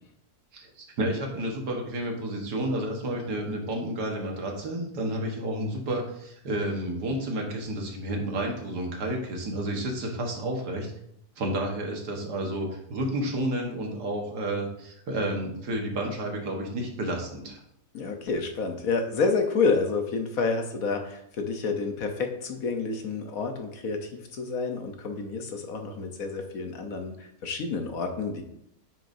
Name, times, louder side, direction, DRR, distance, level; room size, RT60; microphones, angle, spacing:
voice 1, 0.5-10.9 11.4-17.6, right 1 dB, 75° right, 1 dB, 1.9 m, -31 dB
voice 2, 17.9-28.4, left 4 dB, 60° left, 4 dB, 1.3 m, -29 dB
9.0 x 6.3 x 2.7 m, 0.75 s
omnidirectional pair, 1.8 m